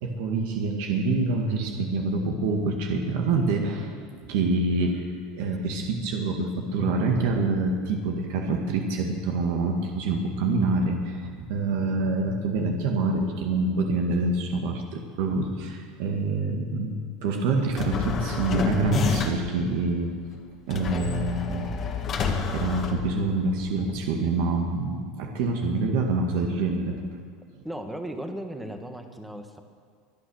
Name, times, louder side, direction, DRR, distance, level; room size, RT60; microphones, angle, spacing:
voice 1, 0.0-5.1 5.3-20.1 20.7-21.7 22.5-27.0, right 3 dB, 70° right, 2 dB, 2.0 m, -26 dB
sound 1, 17.7-19.6 20.7-23.6, left 5 dB, 30° left, 1.7 m, -29 dB
voice 2, 27.6-29.6, right 1 dB, 5° right, 5 dB, 1.4 m, -36 dB
23.5 x 9.1 x 6.5 m, 2.1 s
supercardioid pair, 150°, 0 cm